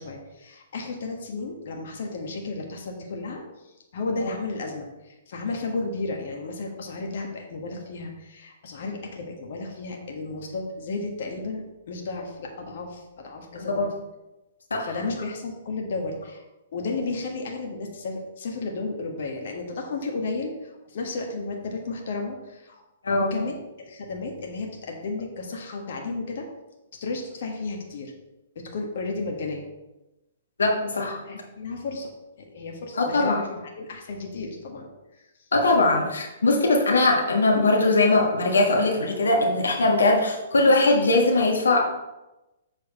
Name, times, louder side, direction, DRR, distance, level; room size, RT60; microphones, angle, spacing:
voice 1, 0.0-13.9 14.8-16.4 16.7-22.8 23.1-26.5 27.0-28.1 28.5-29.7 31.2-32.1 32.4-33.4 33.7-35.5, left 3 dB, 55° left, 1 dB, 1.4 m, -33 dB
voice 2, 23.0-23.4 30.6-31.4 32.9-33.4 35.5-41.8, left 2 dB, 75° left, 1 dB, 1.4 m, -21 dB
7.3 x 6.3 x 4.3 m, 1.0 s
figure-of-eight pair, 115°, 0 cm